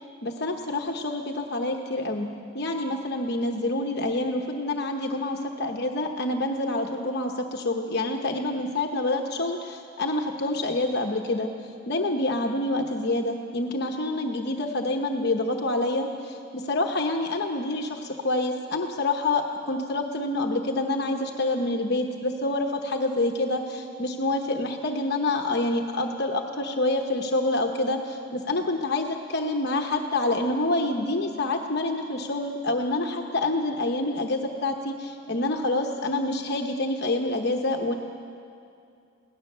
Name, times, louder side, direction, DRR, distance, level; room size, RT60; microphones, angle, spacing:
voice 1, 0.2-11.5 11.9-37.9, left 2 dB, 50° left, 3 dB, 1.0 m, -27 dB
23.0 x 17.0 x 6.7 m, 2.4 s
head